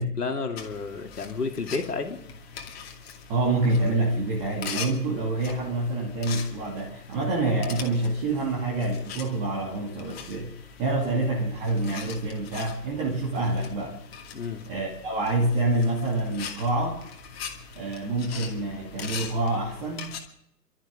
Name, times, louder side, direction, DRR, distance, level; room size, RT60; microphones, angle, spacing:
voice 1, 0.0-2.2 11.1-11.3 14.3-14.6, left 4 dB, 70° left, 3 dB, 2.9 m, -31 dB
sound 1, 0.6-20.2, left 6 dB, 40° left, 2.5 m, -42 dB
voice 2, 3.3-10.5 10.8-14.0 14.7-17.0 17.7-20.2, right 2 dB, 20° right, -3 dB, 2.5 m, -27 dB
29.5 x 13.0 x 3.8 m, 0.73 s
figure-of-eight pair, 140°, 49 cm